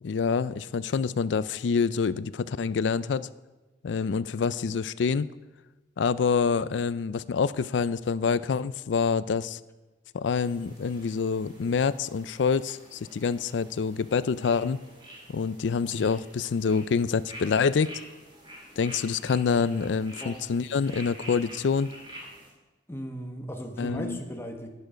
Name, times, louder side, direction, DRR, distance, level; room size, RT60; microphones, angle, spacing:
voice 1, 0.0-3.3 3.8-5.3 6.0-9.6 10.1-14.8 15.3-18.0 18.8-21.9 23.8-24.2, left 5 dB, 80° left, 16 dB, 0.4 m, -26 dB
sound 1, 10.4-22.5, equal, 25° right, 2.6 m, -48 dB
voice 2, 22.9-24.7, equal, 15° left, 3 dB, 1.2 m, -37 dB
11.0 x 10.5 x 5.1 m, 1.1 s
head